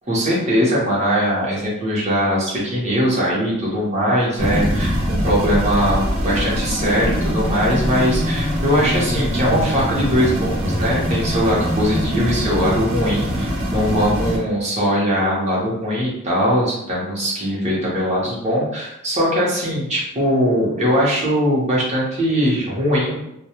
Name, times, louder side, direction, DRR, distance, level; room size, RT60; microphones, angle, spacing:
voice 1, 0.1-23.3, equal, 30° right, -5 dB, 0.8 m, -20 dB
sound 1, 4.4-14.4, equal, 80° right, 0.7 m, -23 dB
2.1 x 2.1 x 2.9 m, 0.83 s
head